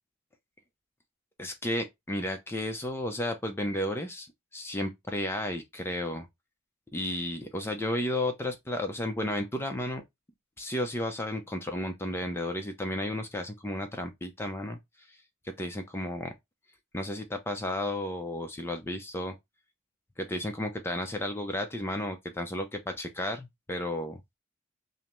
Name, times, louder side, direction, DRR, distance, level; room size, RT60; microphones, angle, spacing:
voice 1, 1.4-4.3 4.5-6.3 6.9-10.0 10.6-14.8 15.1-15.2 15.6-16.3 16.9-19.4 20.2-24.2, left 1 dB, 10° left, 0.5 m, -33 dB
5.4 x 2.1 x 2.9 m
head